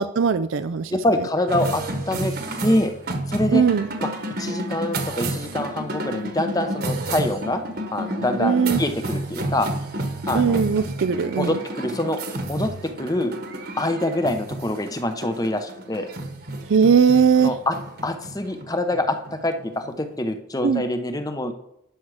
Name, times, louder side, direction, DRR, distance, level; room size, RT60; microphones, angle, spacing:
voice 1, 0.0-1.0 3.5-3.9 8.4-8.8 10.3-11.6 16.7-17.5 20.6-20.8, right 6 dB, 80° right, 10 dB, 0.4 m, -19 dB
voice 2, 0.9-2.3 2.6-2.9 3.3-3.6 4.0-4.1 4.4-7.6 7.9-9.7 10.3-10.6 11.4-12.2 12.5-12.7 13.0-13.4 13.8-16.1 17.4-17.7 18.0-21.5, left 1 dB, 20° left, 7 dB, 0.8 m, -25 dB
sound 1, 1.5-20.1, right 1 dB, 50° right, 1.4 m, -30 dB
11.5 x 6.1 x 4.9 m, 0.78 s
head